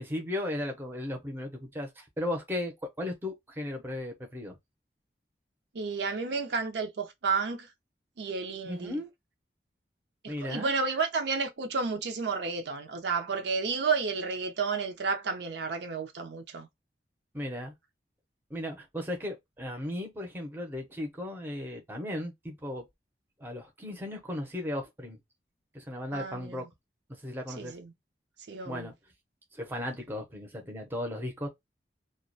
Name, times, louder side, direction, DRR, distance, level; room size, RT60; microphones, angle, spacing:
voice 1, 0.0-4.6 8.7-9.1 10.3-10.7 17.3-17.7 18.5-22.8 23.4-25.2 25.7-26.6 27.2-27.8 28.7-28.9 29.5-31.5, left 1 dB, 10° right, 0.6 m, -36 dB
voice 2, 5.7-7.7 8.2-9.0 10.2-16.7 26.1-26.6 27.6-27.9 28.5-28.9, right 4 dB, 80° right, 0.5 m, -31 dB
2.2 x 2.1 x 2.5 m
head